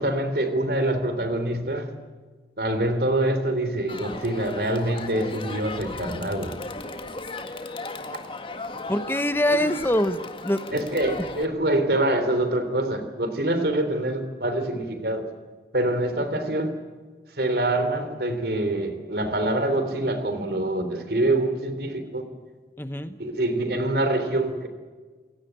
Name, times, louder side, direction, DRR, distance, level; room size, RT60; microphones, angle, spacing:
voice 1, 0.0-1.9 2.6-6.5 9.5-9.6 10.7-15.3 15.7-16.7 17.3-22.3 23.2-24.7, right 1 dB, 60° right, 9 dB, 3.4 m, -25 dB
Crowd, 3.9-11.5, left 3 dB, 30° left, 1.8 m, -36 dB
voice 2, 8.9-10.6 22.8-23.2, left 1 dB, 15° left, 11 dB, 0.8 m, -24 dB
29.0 x 16.5 x 8.9 m, 1.4 s
head